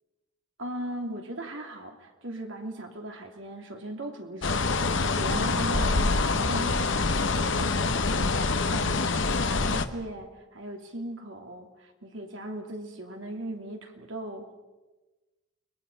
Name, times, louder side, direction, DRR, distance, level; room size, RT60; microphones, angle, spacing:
voice 1, 0.6-6.9 7.3-14.5, right 1 dB, 70° right, 3 dB, 3.0 m, -38 dB
sound 1, 4.4-9.9, left 3 dB, 65° left, 1.1 m, -25 dB
30.0 x 22.0 x 5.6 m, 1.1 s
head